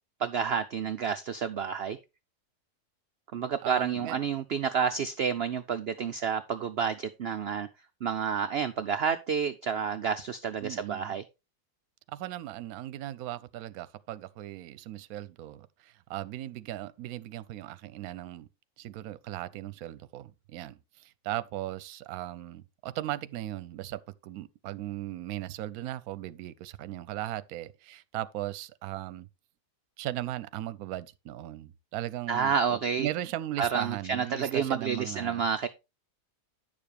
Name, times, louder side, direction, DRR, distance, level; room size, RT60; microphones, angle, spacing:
voice 1, 0.2-2.0 3.3-7.7 8.0-11.2 32.3-33.1 33.6-35.7, right 7 dB, 85° right, 0.5 m, -29 dB
voice 2, 3.6-4.2 10.6-11.2 12.1-18.5 18.8-29.3 30.0-35.4, right 14 dB, 70° right, 1.0 m, -37 dB
10.5 x 6.9 x 3.4 m
omnidirectional pair, 1.7 m